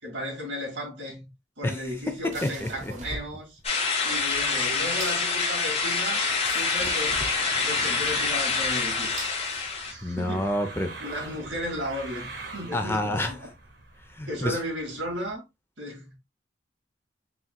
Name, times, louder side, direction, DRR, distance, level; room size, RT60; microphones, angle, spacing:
voice 1, 0.0-1.3 1.6-3.6 4.0-9.1 9.8-10.5 11.0-13.5 14.3-15.4 15.8-16.2, equal, 80° right, 2.2 m, -35 dB
sound 1, 1.7-10.1, right 2 dB, 40° right, 0.9 m, -43 dB
sound 2, 3.6-9.9, left 4 dB, 30° left, 0.9 m, -26 dB
sound 3, 4.2-15.3, right 3 dB, 60° right, 1.4 m, -45 dB
voice 2, 10.0-10.9 12.7-13.4 14.1-14.6, left 1 dB, 10° left, 0.4 m, -28 dB
4.3 x 3.7 x 2.2 m
head